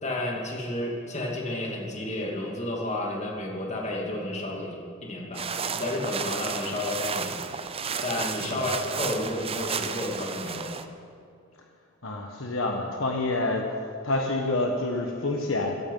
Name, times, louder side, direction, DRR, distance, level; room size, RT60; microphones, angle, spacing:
voice 1, 0.0-7.4 8.0-10.8, left 1 dB, 35° left, -1 dB, 2.7 m, -31 dB
sound 1, 5.3-10.9, right 6 dB, 30° right, 0.7 m, -33 dB
voice 2, 12.0-13.8 14.0-15.8, left 2 dB, 65° left, 2 dB, 1.3 m, -28 dB
15.5 x 15.0 x 5.6 m, 2.5 s
head